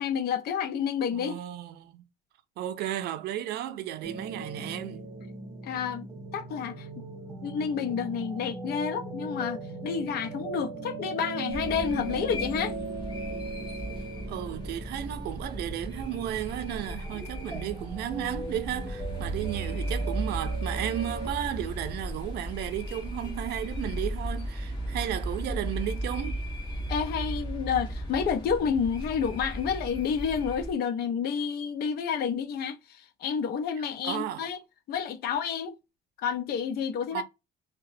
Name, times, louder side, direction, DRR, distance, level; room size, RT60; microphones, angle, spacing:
voice 1, 0.0-1.4 5.6-6.1 6.3-6.9 7.4-12.7 26.9-34.6 34.9-35.7 36.2-37.2, left 7 dB, 70° left, 0.6 m, -30 dB
voice 2, 1.1-2.0 2.6-5.0 14.3-26.4 34.0-34.5 37.1-37.2, right 12 dB, 75° right, 0.5 m, -34 dB
sound 1, 4.0-21.3, right 3 dB, 15° right, 1.1 m, -39 dB
sound 2, 11.5-30.7, equal, 25° left, 1.4 m, -36 dB
2.9 x 2.1 x 2.6 m
cardioid pair, 110°, 17 cm